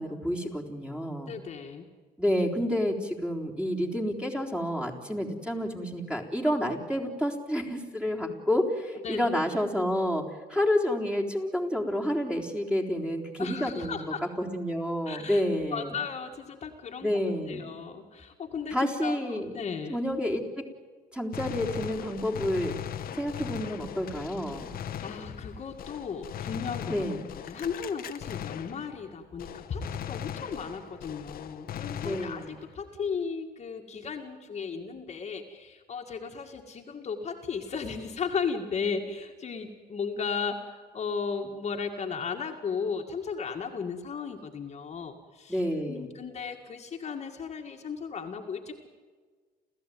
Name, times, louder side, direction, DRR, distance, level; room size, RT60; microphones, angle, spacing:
voice 1, 0.0-1.3 2.2-10.2 10.5-14.0 14.4-16.0 17.0-17.6 18.7-19.5 19.9-20.7 21.1-22.8 23.2-24.7 26.9-27.3 32.0-32.5 45.5-46.1, equal, 5° right, 1 dB, 3.8 m, -29 dB
voice 2, 1.3-1.9 9.0-9.2 13.4-14.2 15.0-15.4 15.7-17.2 17.5-18.8 19.0-20.0 25.0-27.0 27.4-45.6 45.9-48.9, left 5 dB, 40° left, 3 dB, 2.1 m, -35 dB
Gunshot gunfire, 21.3-29.1 29.4-32.7, left 10 dB, 60° left, 1.4 m, -39 dB
30.0 x 14.5 x 9.4 m, 1.5 s
cardioid pair, 110°, 17 cm